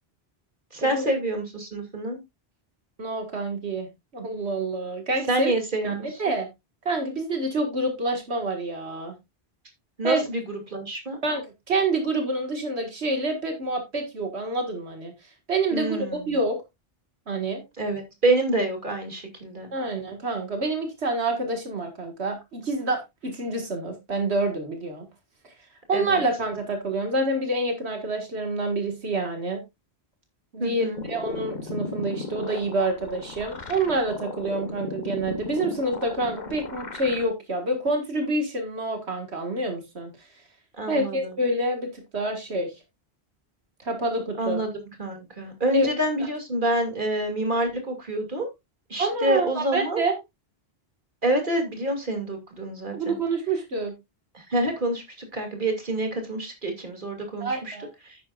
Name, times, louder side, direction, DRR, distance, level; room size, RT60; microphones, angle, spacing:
voice 1, 0.7-2.2 5.3-6.2 10.0-10.4 10.7-11.2 15.7-16.4 17.8-19.7 25.9-26.2 30.6-31.0 40.8-41.3 44.4-48.5 48.9-50.0 51.2-53.1 54.3-57.8 58.1-58.2, right 1 dB, 50° right, 4 dB, 2.7 m, -27 dB
voice 2, 3.0-3.9 4.1-5.5 5.8-5.9 6.2-6.5 6.9-9.1 10.0-10.2 11.2-11.4 11.7-15.1 15.5-16.0 16.3-16.6 17.3-17.6 19.7-25.1 25.4-25.5 25.9-29.6 30.5-40.3 40.9-42.7 43.8-44.6 45.7-45.9 49.0-50.2 52.9-53.9 57.4-57.9, right 2 dB, 85° right, 4 dB, 2.1 m, -27 dB
sound 1, 30.9-37.2, left 3 dB, 45° left, 1.4 m, -36 dB
11.0 x 9.0 x 2.4 m, 0.21 s
omnidirectional pair, 1.1 m